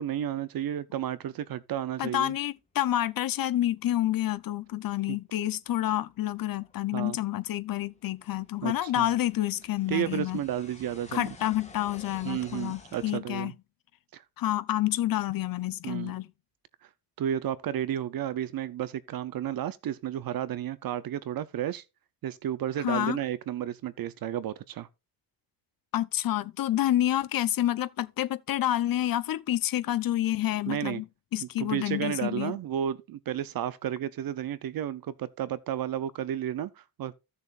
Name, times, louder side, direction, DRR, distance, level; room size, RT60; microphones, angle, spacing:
voice 1, 0.0-2.3 5.1-5.2 6.9-7.2 8.6-9.1 9.9-11.3 12.2-13.5 14.1-14.2 15.8-16.1 17.2-21.8 22.2-24.9 30.7-31.0 31.4-37.1, right 10 dB, 65° right, 0.7 m, -32 dB
voice 2, 2.0-10.4 11.1-13.5 14.4-16.3 22.8-23.2 25.9-31.0 31.3-32.6, left 13 dB, 65° left, 0.7 m, -28 dB
sound 1, 5.8-13.2, left 3 dB, 20° left, 1.6 m, -53 dB
15.5 x 6.8 x 2.5 m
wide cardioid pair, 170°, 38 cm